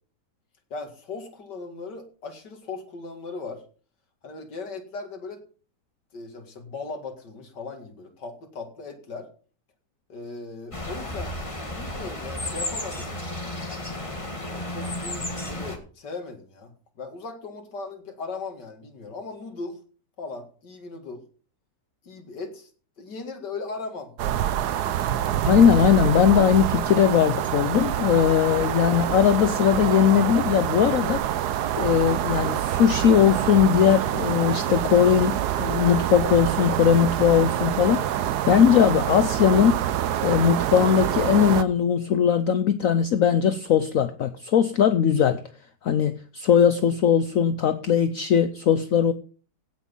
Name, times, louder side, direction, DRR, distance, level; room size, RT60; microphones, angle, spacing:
voice 1, 0.7-3.6 4.2-5.4 6.1-9.3 10.1-11.4 11.6-13.1 14.4-16.7 17.0-19.8 20.2-21.2 22.0-22.7 23.0-24.2 24.5-25.3, left 3 dB, 75° left, 5 dB, 2.7 m, -38 dB
sound 1, 10.7-15.8, left 1 dB, 20° left, 1.9 m, -33 dB
sound 2, 24.2-41.6, right 11 dB, 70° right, 1.3 m, -26 dB
voice 2, 25.4-39.7 40.2-45.4 45.8-49.1, left 8 dB, 60° left, 11 dB, 1.0 m, -20 dB
16.0 x 6.2 x 5.4 m, 0.40 s
omnidirectional pair, 1.9 m